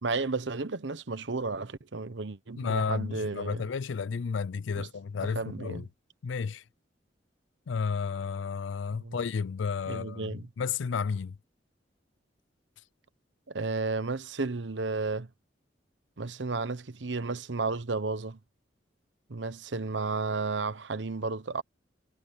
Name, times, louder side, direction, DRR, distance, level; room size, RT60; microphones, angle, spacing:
voice 1, 0.0-3.7 4.8-4.9 5.3-5.9 8.9-9.2 9.8-10.5 13.5-15.3 16.2-18.4 19.3-21.6, right 3 dB, 75° right, 1.0 m, -33 dB
voice 2, 2.6-5.8 6.2-6.6 7.7-11.4, left 5 dB, 85° left, 0.4 m, -32 dB
head